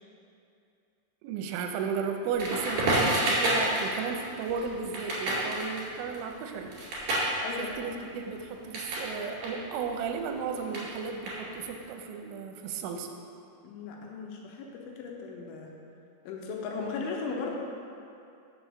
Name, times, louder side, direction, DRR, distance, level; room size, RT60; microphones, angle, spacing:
voice 1, 1.2-6.7 7.6-13.1, right 6 dB, 80° right, 4 dB, 2.9 m, -34 dB
Crackle, 2.4-9.1 9.4-11.8, right 1 dB, 50° right, 3.2 m, -30 dB
voice 2, 7.4-8.0 13.6-15.7 16.3-17.6, left 4 dB, 85° left, 0 dB, 3.2 m, -37 dB
6.9 x 4.6 x 6.7 m, 2.6 s
omnidirectional pair, 5.6 m